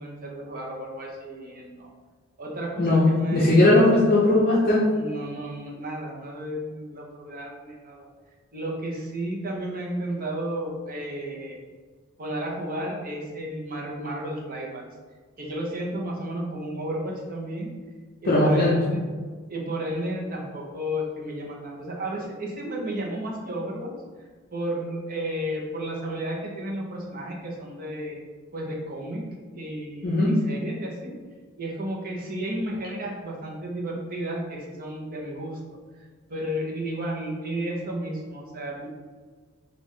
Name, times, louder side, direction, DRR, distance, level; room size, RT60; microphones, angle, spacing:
voice 1, 0.0-1.9 2.4-2.9 3.2-3.6 4.9-8.1 8.5-11.6 12.2-14.8 15.4-17.7 18.2-19.0 19.5-28.2 28.5-29.2 29.5-31.1 31.6-35.6 36.3-38.9, right 1 dB, 45° right, -2 dB, 0.9 m, -33 dB
voice 2, 2.8-4.8 18.3-18.7 30.0-30.3, left 1 dB, 45° left, -6 dB, 0.7 m, -18 dB
5.6 x 2.5 x 3.1 m, 1.5 s
head